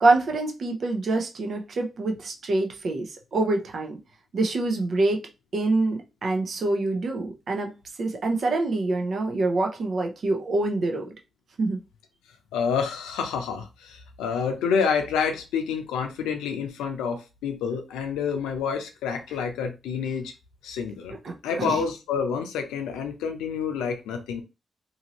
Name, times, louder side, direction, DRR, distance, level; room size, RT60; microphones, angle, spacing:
voice 1, 0.0-3.9 4.3-5.2 5.5-7.7 8.0-11.1 11.6-11.8 21.2-21.3 21.6-21.8, right 2 dB, 60° right, 0.7 m, -25 dB
voice 2, 12.5-20.3 20.6-21.2 21.4-24.4, left 6 dB, 90° left, 0.5 m, -28 dB
2.7 x 2.7 x 2.9 m
supercardioid pair, 50°, 0 cm